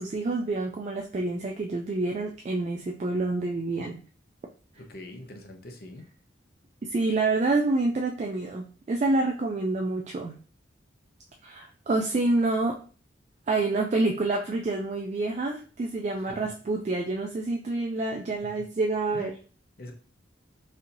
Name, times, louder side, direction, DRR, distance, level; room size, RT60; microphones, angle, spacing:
voice 1, 0.0-4.0 6.8-10.4 11.4-12.8 13.5-19.3, right 2 dB, 35° right, 1 dB, 0.3 m, -27 dB
voice 2, 4.8-6.0 16.1-16.3 19.1-19.4 19.8-19.9, left 1 dB, 55° left, 4 dB, 0.7 m, -43 dB
4.2 x 2.7 x 2.6 m, 0.38 s
head